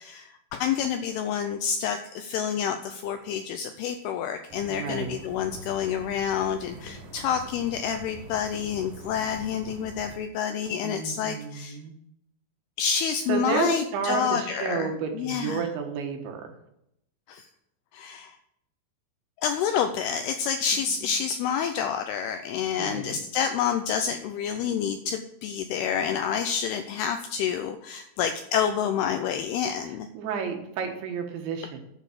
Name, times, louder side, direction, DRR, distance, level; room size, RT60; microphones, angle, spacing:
voice 1, 0.0-11.8 12.8-15.7 17.3-17.5 17.9-18.4 19.4-30.1, left 7 dB, 85° left, 7 dB, 2.3 m, -28 dB
sound 1, 4.5-10.2, right 1 dB, 55° right, 2.7 m, -44 dB
voice 2, 4.7-5.2 10.8-11.9 13.3-16.5 21.0-21.1 22.8-23.2 30.1-31.8, right 6 dB, 80° right, 3 dB, 3.8 m, -31 dB
8.8 x 7.1 x 7.4 m, 0.77 s
omnidirectional pair, 5.2 m